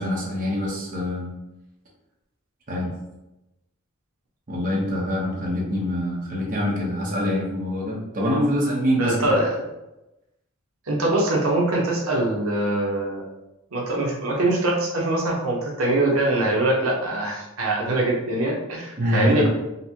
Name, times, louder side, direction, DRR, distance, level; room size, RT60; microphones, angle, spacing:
voice 1, 0.0-1.3 2.7-2.9 4.5-9.3 19.0-19.5, equal, 40° right, -4 dB, 0.8 m, -25 dB
voice 2, 9.0-9.6 10.9-13.3 13.7-19.5, right 2 dB, 75° right, -2 dB, 0.7 m, -23 dB
4.0 x 2.1 x 2.8 m, 0.95 s
head